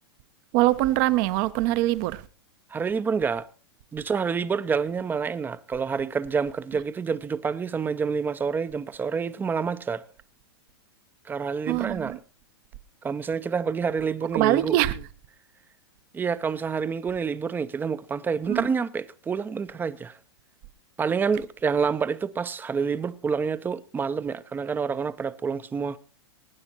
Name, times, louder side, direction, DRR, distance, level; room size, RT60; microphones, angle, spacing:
voice 1, 0.5-2.2 11.7-12.2 14.3-15.0 18.5-18.7, right 17 dB, 50° right, 0.7 m, -23 dB
voice 2, 2.7-3.5 3.9-10.0 11.3-12.2 13.0-14.8 16.1-20.2 21.0-26.0, right 6 dB, 15° right, 0.5 m, -28 dB
24.0 x 9.7 x 2.9 m
hypercardioid pair, 110°, 13 cm